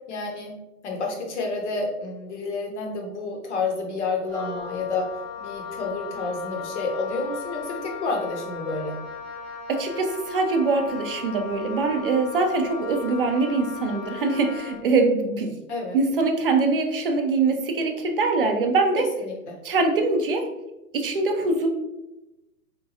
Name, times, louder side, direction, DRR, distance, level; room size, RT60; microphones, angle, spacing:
voice 1, 0.1-0.6 0.8-5.1 5.4-9.0 15.7-16.0 18.9-19.6, left 3 dB, 50° left, 1 dB, 0.9 m, -29 dB
Wind instrument woodwind instrument, 4.3-14.8, left 5 dB, 20° left, 0.5 m, -37 dB
voice 2, 9.7-15.6 15.9-19.1 19.6-20.5 20.9-21.7, right 3 dB, 40° right, 4 dB, 0.5 m, -23 dB
4.4 x 2.2 x 2.7 m, 0.98 s
figure-of-eight pair, 125°, 46 cm